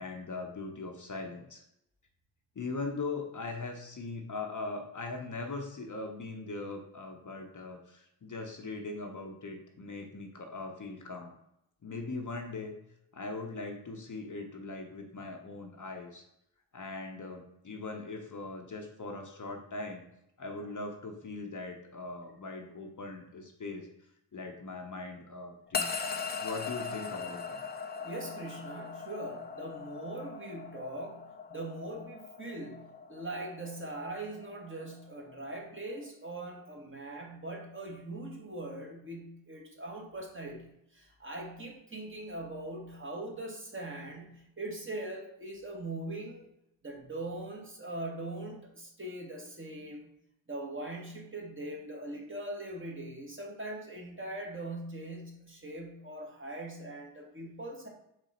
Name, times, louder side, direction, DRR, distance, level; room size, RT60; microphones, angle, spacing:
voice 1, 0.0-1.6 2.6-11.4 11.8-12.7 13.1-16.2 16.7-20.0 20.4-23.9 24.3-25.9 26.4-27.6, left 3 dB, 40° left, 3 dB, 0.8 m, -40 dB
sound 1, 25.7-36.1, left 5 dB, 20° left, 0.4 m, -40 dB
voice 2, 28.0-46.5 46.8-50.1 50.5-57.9, right 2 dB, 25° right, 0 dB, 1.2 m, -41 dB
4.1 x 3.1 x 4.2 m, 0.79 s
supercardioid pair, 45°, 49 cm